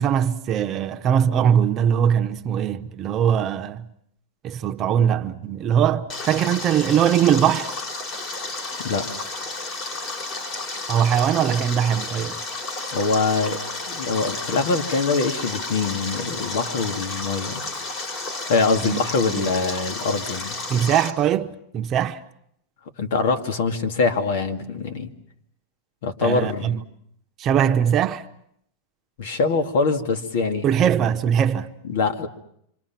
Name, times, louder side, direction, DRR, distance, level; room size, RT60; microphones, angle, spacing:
voice 1, 0.0-3.8 4.4-7.7 10.9-12.4 18.8-19.0 19.4-19.5 20.7-22.2 26.2-26.8 27.4-28.2 30.6-31.7, right 9 dB, 30° right, 1.0 m, -21 dB
Stream, 6.1-21.1, left 3 dB, 40° left, 3.7 m, -32 dB
voice 2, 12.9-13.6 13.9-17.6 18.5-20.6 23.0-25.1 26.0-26.8 29.2-30.6 31.8-32.3, left 4 dB, 75° left, 2.3 m, -23 dB
27.0 x 26.0 x 6.0 m
supercardioid pair, 150°, 0 cm